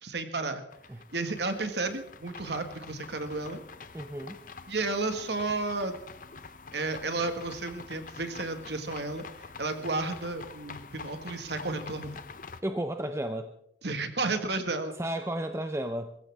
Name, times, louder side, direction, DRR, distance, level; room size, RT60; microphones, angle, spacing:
voice 1, 0.0-0.6 1.1-3.6 4.7-6.0 6.7-9.2 9.6-12.2 13.8-14.9, right 3 dB, 70° right, 8 dB, 1.8 m, -32 dB
sound 1, 0.7-12.6, left 4 dB, 45° left, 0.8 m, -46 dB
voice 2, 3.9-4.4 12.6-13.5 14.9-16.2, right 1 dB, 15° right, 8 dB, 0.6 m, -33 dB
23.0 x 15.5 x 3.6 m, 0.73 s
head